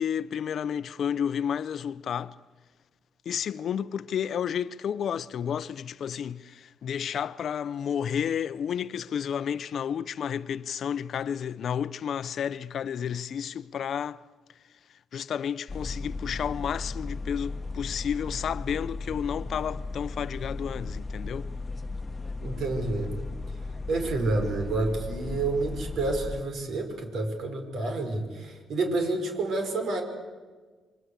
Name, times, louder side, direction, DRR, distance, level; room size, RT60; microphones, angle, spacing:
voice 1, 0.0-2.3 3.2-14.2 15.1-21.5, left 8 dB, 60° left, 0.7 m, -31 dB
sound 1, 15.7-26.4, left 3 dB, 25° left, 1.3 m, -36 dB
voice 2, 22.4-23.1 23.9-30.0, right 2 dB, 65° right, 5.2 m, -29 dB
27.5 x 23.5 x 8.1 m
cardioid pair, 90°, 0 cm